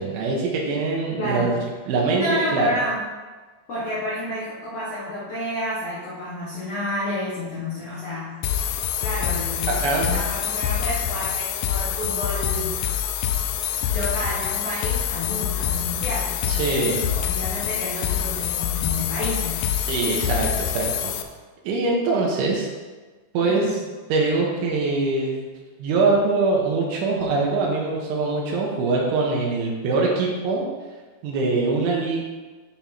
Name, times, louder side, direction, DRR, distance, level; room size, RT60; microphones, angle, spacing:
voice 1, 0.0-1.6 1.9-2.2 2.5-2.7 9.7-10.2 16.5-17.1 19.8-21.1 21.7-22.7 23.3-23.6 24.1-25.4 25.8-30.7 31.2-32.2, right 3 dB, 85° right, -2 dB, 3.6 m, -23 dB
voice 2, 1.2-1.6 2.2-3.1 3.7-8.4 9.0-12.8 13.6-19.7 23.4-23.7, left 1 dB, 65° left, -7 dB, 1.6 m, -30 dB
sound 1, 8.4-21.2, left 9 dB, 85° left, 2.6 m, -26 dB
9.5 x 5.6 x 4.4 m, 1.3 s
omnidirectional pair, 5.4 m